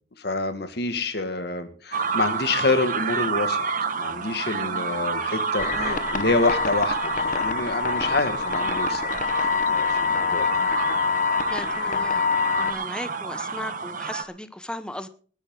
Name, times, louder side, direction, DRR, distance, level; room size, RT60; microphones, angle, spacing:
voice 1, 0.2-3.6 3.9-10.5, left 3 dB, 65° left, 2.0 m, -27 dB
sound 1, 1.9-14.2, right 5 dB, 50° right, 1.4 m, -29 dB
sound 2, 5.6-12.7, left 5 dB, 45° left, 1.2 m, -25 dB
voice 2, 11.5-12.2 12.5-15.1, left 1 dB, 5° left, 0.9 m, -36 dB
20.0 x 10.5 x 3.8 m
head